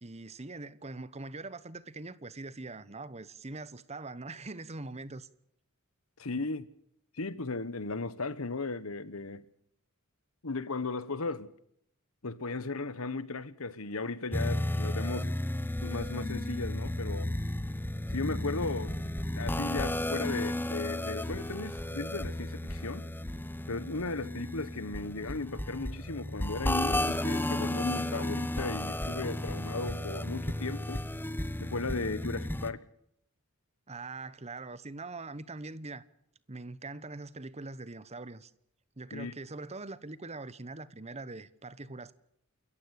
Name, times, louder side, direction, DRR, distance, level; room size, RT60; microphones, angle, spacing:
voice 1, 0.0-5.3 33.9-36.0 36.5-38.5 39.0-42.1, right 3 dB, 30° right, 1.0 m, -42 dB
voice 2, 6.2-6.7 7.1-9.4 10.4-11.5 12.2-15.3 15.8-17.3 18.1-23.1 23.7-31.0 31.6-32.8 39.1-39.3, left 3 dB, 75° left, 1.3 m, -36 dB
sound 1, 14.3-32.7, left 1 dB, 10° left, 0.8 m, -33 dB
29.0 x 14.5 x 6.6 m
head